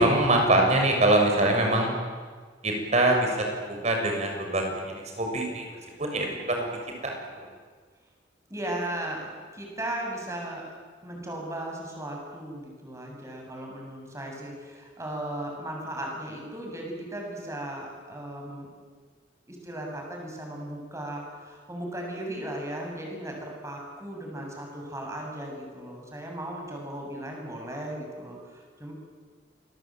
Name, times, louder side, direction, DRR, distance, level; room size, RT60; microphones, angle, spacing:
voice 1, 0.0-1.9 2.6-3.3 3.7-4.6 4.9-5.7 6.0-6.8 7.0-7.5, right 1 dB, 40° right, 2 dB, 6.9 m, -23 dB
voice 2, 8.5-10.6 11.0-18.7 19.5-28.9, right 1 dB, 15° right, 0 dB, 7.5 m, -36 dB
29.0 x 22.0 x 9.1 m, 1.5 s
head